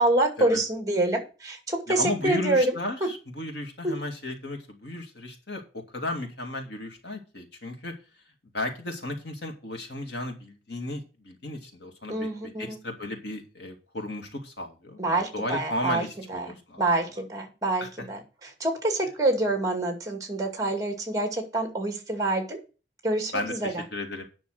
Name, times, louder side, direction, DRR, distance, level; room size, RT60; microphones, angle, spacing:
voice 1, 0.0-2.8 3.0-3.1 3.8-3.9 12.1-12.8 15.0-22.6 23.0-23.8, right 2 dB, 20° right, 4 dB, 2.2 m, -27 dB
voice 2, 1.9-5.6 5.9-7.9 8.5-12.3 12.6-16.8 17.8-17.9 23.3-23.5 23.9-24.2, left 1 dB, 75° left, 3 dB, 2.4 m, -34 dB
9.8 x 6.1 x 6.5 m, 0.33 s
head